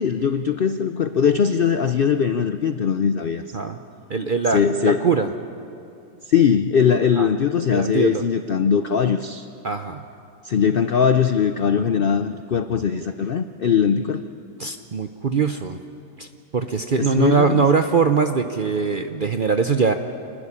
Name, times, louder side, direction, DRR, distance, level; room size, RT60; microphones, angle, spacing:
voice 1, 0.0-3.4 4.5-5.1 6.3-9.5 10.4-14.2 17.0-17.6, left 7 dB, 80° left, 10 dB, 0.5 m, -20 dB
voice 2, 4.1-5.3 7.2-7.3 7.7-8.2 9.6-10.0 14.6-15.8 16.2-16.3 16.5-19.9, right 5 dB, 50° right, 7 dB, 0.6 m, -21 dB
27.0 x 12.0 x 9.9 m, 2.6 s
omnidirectional pair, 1.8 m